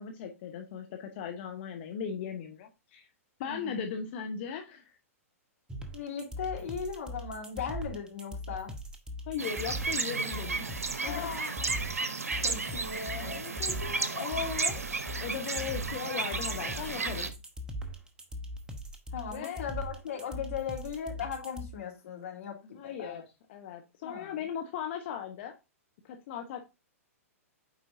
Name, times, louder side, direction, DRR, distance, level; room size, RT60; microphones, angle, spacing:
voice 1, 0.0-3.1 3.4-4.9 9.3-10.7 11.0-11.3 15.2-17.3 19.3-19.6 22.7-23.2 23.5-25.5 26.1-26.6, left 7 dB, 50° left, 0.9 m, -38 dB
voice 2, 3.4-3.8 5.9-8.7 11.0-11.8 12.3-14.8 19.1-23.2 24.0-24.4, left 6 dB, 65° left, 2.6 m, -38 dB
sound 1, 5.7-21.7, equal, 10° right, 1.0 m, -40 dB
sound 2, 9.4-17.3, right 4 dB, 80° right, 0.8 m, -33 dB
8.9 x 4.4 x 2.6 m
figure-of-eight pair, 110°, 8 cm